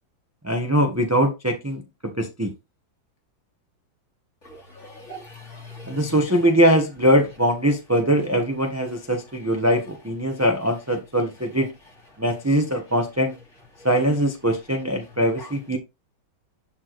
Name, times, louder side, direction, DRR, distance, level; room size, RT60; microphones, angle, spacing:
voice 1, 0.4-2.5 5.9-11.7 12.2-13.4 13.8-15.8, equal, 10° right, 0.8 m, -22 dB
voice 2, 4.4-6.2 10.3-10.4 13.8-13.9 15.4-15.5, left 1 dB, 35° left, 2.9 m, -41 dB
11.0 x 4.4 x 3.1 m
omnidirectional pair, 2.1 m